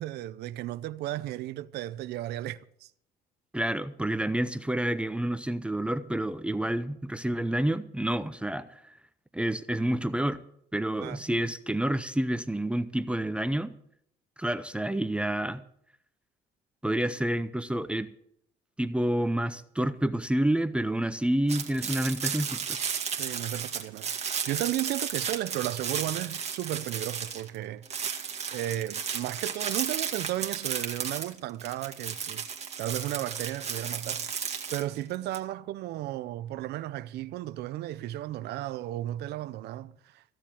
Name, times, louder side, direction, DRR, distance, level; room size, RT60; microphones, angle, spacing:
voice 1, 0.0-2.9 11.0-11.2 23.2-28.1 28.5-32.4 32.8-34.3 34.7-40.2, right 14 dB, 75° right, 0.6 m, -34 dB
voice 2, 3.5-8.8 9.3-10.4 10.7-13.8 14.4-15.6 16.8-18.1 18.8-22.8, right 1 dB, 5° right, 0.7 m, -29 dB
sound 1, 21.5-27.6 27.8-35.4, right 7 dB, 40° right, 1.9 m, -34 dB
15.0 x 7.4 x 8.6 m
cardioid pair, 110°, 17 cm